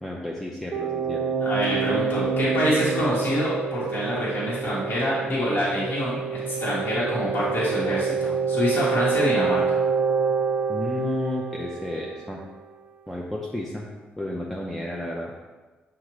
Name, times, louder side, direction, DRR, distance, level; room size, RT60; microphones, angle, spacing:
voice 1, 0.0-1.2 10.7-12.4 13.1-13.9 14.2-15.3, left 1 dB, 5° left, -2 dB, 0.5 m, -32 dB
sound 1, 0.7-12.3, right 5 dB, 55° right, 0.3 m, -27 dB
voice 2, 1.4-9.6, equal, 60° left, -8 dB, 1.2 m, -26 dB
6.1 x 2.4 x 3.0 m, 1.3 s
cardioid pair, 90°, 4 cm